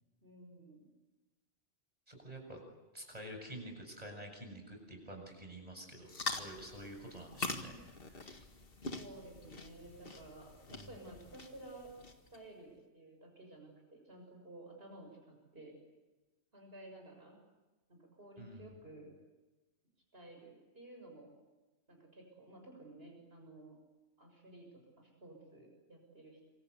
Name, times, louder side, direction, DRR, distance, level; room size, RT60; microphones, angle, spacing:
voice 1, 0.2-0.9 8.9-11.9 12.3-15.7 16.5-17.4 17.9-19.1 20.1-21.3 21.9-23.8 24.2-26.5, right 2 dB, 60° right, 2 dB, 7.1 m, -54 dB
voice 2, 2.1-2.6 2.9-7.7 8.1-8.4 10.7-11.0 18.4-18.7, right 1 dB, 35° right, 3 dB, 7.6 m, -49 dB
sound 1, 6.1-12.4, left 3 dB, 55° left, 2.1 m, -44 dB
27.5 x 25.0 x 8.3 m, 1.1 s
omnidirectional pair, 1.2 m